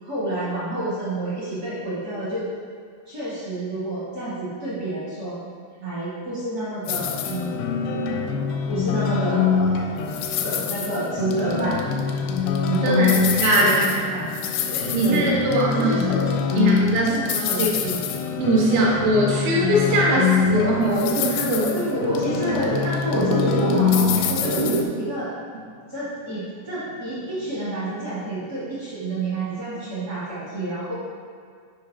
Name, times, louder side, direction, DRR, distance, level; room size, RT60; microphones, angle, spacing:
voice 1, 0.0-2.5 3.1-5.4 5.8-7.7 8.7-9.9 10.4-11.8 12.7-14.3 15.0-15.3 15.7-18.0 21.7-24.6 25.0-25.3 25.9-30.9, right 2 dB, 50° right, -10 dB, 1.1 m, -29 dB
sound 1, 6.9-24.8, left 6 dB, 80° left, 2.5 m, -24 dB
voice 2, 13.4-13.9 14.6-16.0 16.6-17.7 18.4-21.8, right 1 dB, 90° right, -5 dB, 3.8 m, -21 dB
sound 2, 23.1-24.1 24.3-25.2 25.6-25.7 26.0-26.2 26.7-28.1 28.4-29.0, right 3 dB, 70° right, 2.0 m, -27 dB
12.0 x 5.2 x 2.8 m, 2.1 s
omnidirectional pair, 5.1 m